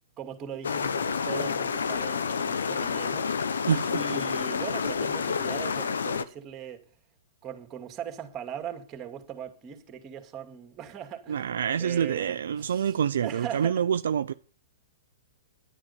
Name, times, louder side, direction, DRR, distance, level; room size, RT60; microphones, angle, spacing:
voice 1, 0.2-3.6 3.9-6.8 7.4-11.5 11.8-13.8, right 8 dB, 25° right, 2.3 m, -40 dB
sound 1, 0.6-6.2, left 6 dB, 80° left, 1.0 m, -29 dB
voice 2, 11.3-14.3, right 8 dB, 70° right, 0.5 m, -27 dB
11.0 x 9.8 x 6.9 m
hypercardioid pair, 125°, 0 cm